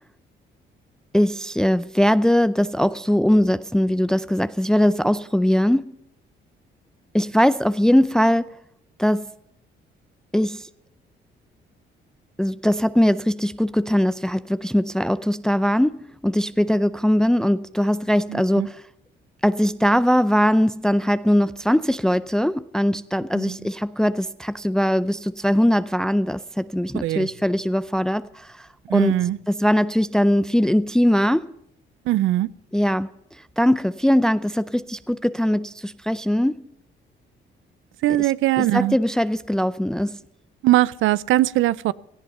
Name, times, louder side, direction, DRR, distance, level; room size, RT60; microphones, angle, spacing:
voice 1, 1.1-5.9 7.1-8.6 9.0-9.3 10.3-10.7 12.4-18.8 19.4-29.2 29.5-31.5 32.7-36.7 38.2-38.3 38.6-40.2, equal, 5° left, 0.5 m, -21 dB
voice 2, 18.3-18.7 23.3-23.6 27.0-27.3 28.9-29.4 32.1-32.5 38.0-39.0 40.6-41.9, right 15 dB, 85° right, 0.6 m, -20 dB
17.5 x 14.0 x 5.6 m
cardioid pair, 90°, 20 cm